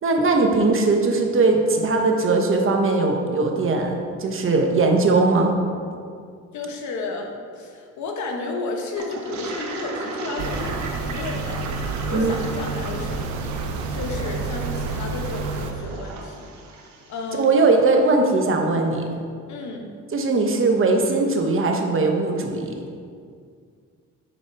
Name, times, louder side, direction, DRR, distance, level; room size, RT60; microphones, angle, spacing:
voice 1, 0.0-5.5 12.1-12.4 17.3-19.0 20.1-22.8, right 3 dB, 45° right, 3 dB, 1.1 m, -20 dB
voice 2, 6.5-13.4 13.9-16.5 17.1-17.6 19.5-19.9, left 3 dB, 70° left, 2 dB, 1.2 m, -32 dB
Toilet flush, 9.0-17.5, right 3 dB, 70° right, 1.1 m, -36 dB
sound 1, 10.4-15.7, right 3 dB, 85° right, 0.8 m, -29 dB
9.1 x 4.2 x 4.7 m, 2.2 s
cardioid pair, 90°, 30 cm